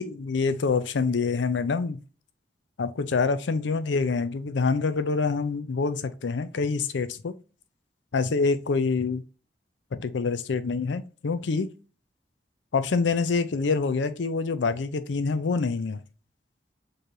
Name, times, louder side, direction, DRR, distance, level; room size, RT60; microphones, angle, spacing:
voice 1, 0.0-2.0 2.8-7.3 8.1-9.2 10.0-11.7 12.7-16.0, left 4 dB, 80° left, 0.5 m, -26 dB
4.7 x 3.2 x 2.7 m
head